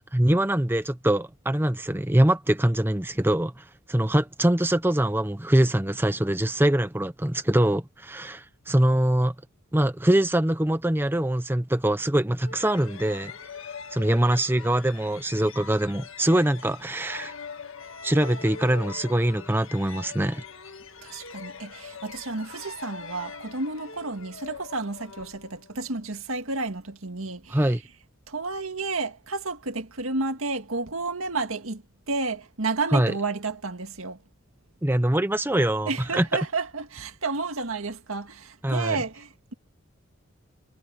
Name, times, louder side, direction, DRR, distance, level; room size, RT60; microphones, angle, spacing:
voice 1, 0.1-9.3 9.7-13.3 13.9-17.3 18.0-20.4 27.5-27.8 32.9-33.1 34.8-36.3 38.6-39.0, right 1 dB, 10° right, 0.7 m, -23 dB
sound 1, 12.4-25.9, left 5 dB, 75° left, 1.6 m, -42 dB
voice 2, 21.0-27.7 28.3-34.2 35.9-39.5, right 3 dB, 80° right, 2.0 m, -31 dB
head